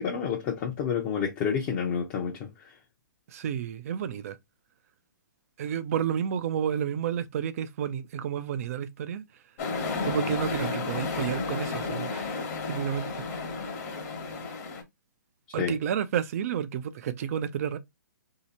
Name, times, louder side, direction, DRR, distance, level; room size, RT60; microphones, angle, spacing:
voice 1, 0.0-2.5 15.6-15.7, left 7 dB, 30° left, 0.7 m, -29 dB
voice 2, 3.3-4.4 5.6-9.2 10.0-12.4 12.6-13.2 15.5-17.8, right 9 dB, 45° right, 0.5 m, -31 dB
sound 1, 9.6-14.8, left 4 dB, 45° left, 1.1 m, -32 dB
3.1 x 2.8 x 2.8 m
hypercardioid pair, 140°, 11 cm